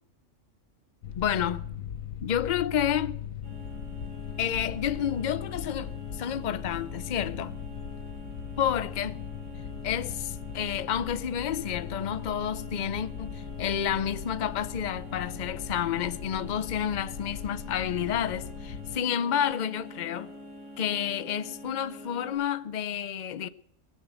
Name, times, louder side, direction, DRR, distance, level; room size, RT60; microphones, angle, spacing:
sound 1, 1.0-19.0, left 8 dB, 80° left, 1.3 m, -39 dB
voice 1, 1.2-1.6 2.2-3.2 4.4-7.5 8.6-9.2 9.8-20.3 20.8-23.5, left 9 dB, 45° left, 0.6 m, -30 dB
sound 2, 3.4-22.4, equal, 70° right, 5.8 m, -45 dB
18.5 x 7.5 x 8.8 m
omnidirectional pair, 1.4 m